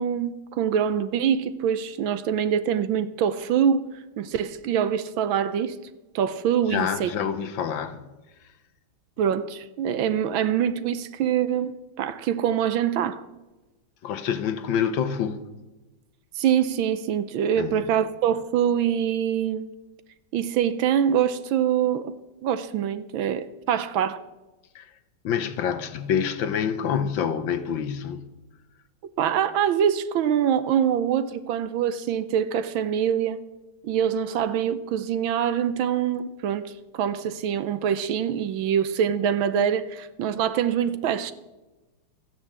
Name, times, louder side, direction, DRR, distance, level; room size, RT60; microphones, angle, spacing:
voice 1, 0.0-3.9 4.2-5.8 6.1-7.1 9.2-13.2 16.4-19.7 20.3-22.1 22.4-24.2 29.2-33.4 33.8-41.3, right 9 dB, 70° right, 1.4 m, -24 dB
voice 2, 6.7-8.1 14.0-15.4 17.6-17.9 24.7-24.9 25.2-28.3, left 8 dB, 65° left, 1.5 m, -27 dB
14.0 x 10.0 x 7.2 m
omnidirectional pair, 2.3 m